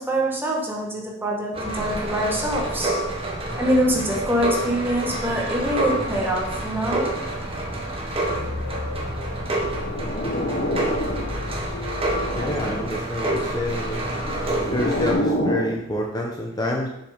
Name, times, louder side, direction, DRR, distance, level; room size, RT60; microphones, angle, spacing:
voice 1, 0.0-3.0 3.6-7.2, equal, 10° right, -2 dB, 1.5 m, -24 dB
sound 1, 1.5-15.1, right 1 dB, 30° right, 1.5 m, -28 dB
sound 2, 8.3-13.3, left 3 dB, 80° left, 0.7 m, -35 dB
sound 3, 9.7-11.5 11.9-13.0 13.9-15.8, left 1 dB, 50° left, 1.0 m, -28 dB
voice 2, 12.3-14.1 14.7-16.9, left 1 dB, 20° left, 0 dB, 0.9 m, -27 dB
7.0 x 5.6 x 5.1 m, 0.80 s
head